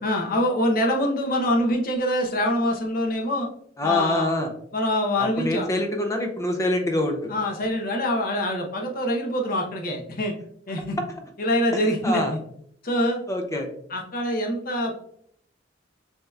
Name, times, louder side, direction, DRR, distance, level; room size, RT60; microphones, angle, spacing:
voice 1, 0.0-3.5 3.8-4.3 4.7-5.7 7.3-10.3 10.7-11.0 11.4-12.4 12.8-13.2 13.9-14.9, left 1 dB, 50° left, 1 dB, 0.8 m, -24 dB
voice 2, 3.8-4.5 5.2-7.3 12.0-12.3 13.3-13.7, left 1 dB, 15° left, 4 dB, 0.5 m, -25 dB
6.4 x 2.8 x 2.3 m, 0.67 s
head